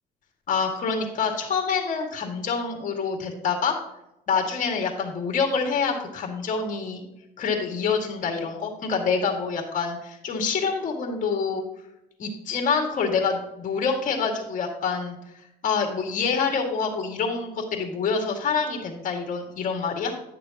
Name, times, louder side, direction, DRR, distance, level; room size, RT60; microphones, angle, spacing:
voice 1, 0.5-3.8 4.3-7.0 7.4-11.6 12.2-15.2 15.6-20.2, left 5 dB, 50° left, 3 dB, 2.0 m, -26 dB
10.5 x 6.7 x 2.9 m, 0.90 s
cardioid pair, 110°, 17 cm